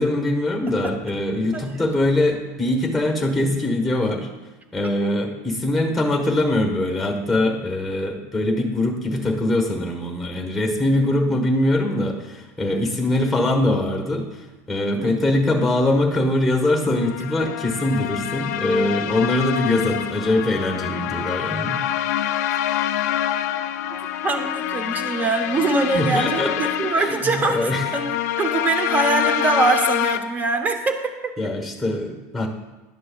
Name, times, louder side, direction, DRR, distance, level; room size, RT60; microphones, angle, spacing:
voice 1, 0.0-4.3 4.7-14.2 14.7-21.8 25.9-26.7 27.0-27.9 31.4-32.5, left 1 dB, ahead, 2 dB, 1.2 m, -22 dB
sound 1, 16.8-30.2, left 11 dB, 80° left, 0.4 m, -26 dB
voice 2, 24.2-31.3, right 3 dB, 20° right, 7 dB, 0.7 m, -23 dB
11.0 x 6.6 x 2.3 m, 1.1 s
supercardioid pair, 130°, 9 cm